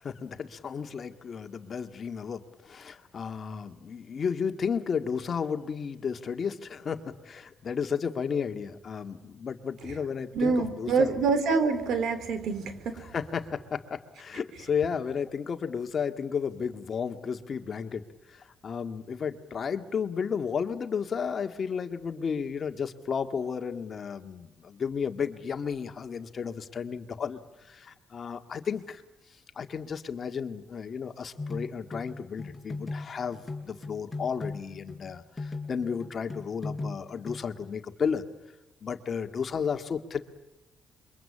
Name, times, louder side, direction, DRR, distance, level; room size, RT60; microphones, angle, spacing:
voice 1, 0.0-11.1 13.0-29.0 29.6-38.2 38.8-40.2, left 6 dB, 45° left, 7 dB, 1.9 m, -33 dB
voice 2, 10.3-13.0, right 4 dB, 75° right, 11 dB, 3.7 m, -26 dB
sound 1, 31.4-37.6, left 3 dB, 20° left, 4.4 m, -38 dB
27.0 x 23.5 x 8.6 m, 1.0 s
cardioid pair, 90°, 0 cm